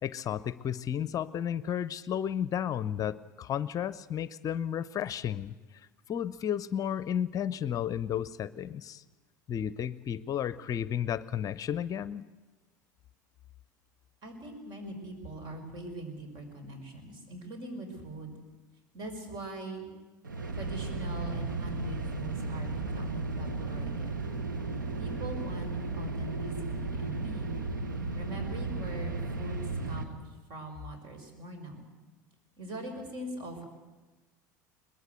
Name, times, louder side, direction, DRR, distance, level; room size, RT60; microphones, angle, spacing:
voice 1, 0.0-5.5 6.1-9.0 9.5-12.2, left 9 dB, 35° left, 17 dB, 0.6 m, -33 dB
voice 2, 14.2-18.3 18.9-19.9 20.5-24.3 25.0-27.6 28.1-31.9 32.6-33.6, right 1 dB, 50° right, 6 dB, 5.7 m, -42 dB
sound 1, 20.2-30.0, right 3 dB, 90° right, 1.5 m, -34 dB
22.0 x 20.5 x 8.0 m, 1.2 s
hypercardioid pair, 75°, 10 cm